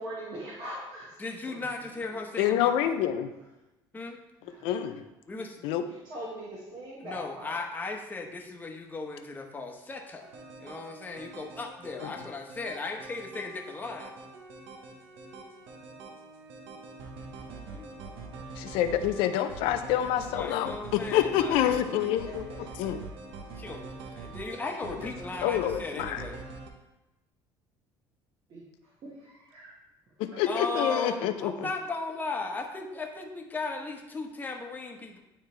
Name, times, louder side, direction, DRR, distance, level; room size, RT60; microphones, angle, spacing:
voice 1, 0.0-1.2 1.5-1.6 4.4-4.7 5.9-7.6 21.6-22.7 22.9-23.0 28.5-29.7 30.2-30.4 30.7-31.1, right 1 dB, 50° right, -7 dB, 1.6 m, -42 dB
voice 2, 1.2-3.0 3.9-4.2 5.3-5.7 7.0-10.3 10.6-14.1 17.7-18.0 20.3-21.6 23.6-26.4 30.4-35.2, left 3 dB, 20° left, 1 dB, 1.0 m, -36 dB
voice 3, 2.4-3.3 4.6-5.0 5.6-5.8 12.0-12.1 18.6-22.4 22.8-23.0 25.4-26.2 30.2-31.7, left 11 dB, 80° left, 8 dB, 0.5 m, -27 dB
sound 1, 10.2-26.7, right 3 dB, 70° right, 1.0 m, -44 dB
9.7 x 3.3 x 3.3 m, 1.0 s
supercardioid pair, 100°, 9 cm